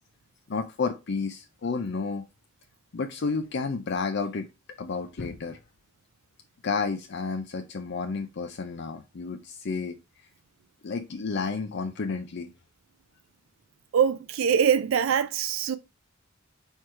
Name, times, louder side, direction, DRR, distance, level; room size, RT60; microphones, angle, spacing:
voice 1, 0.5-2.2 2.9-4.5 4.8-5.6 6.6-10.0 10.8-12.5, left 4 dB, 55° left, 0.5 m, -31 dB
voice 2, 13.9-15.8, right 7 dB, 75° right, 0.4 m, -23 dB
4.6 x 4.5 x 4.7 m
head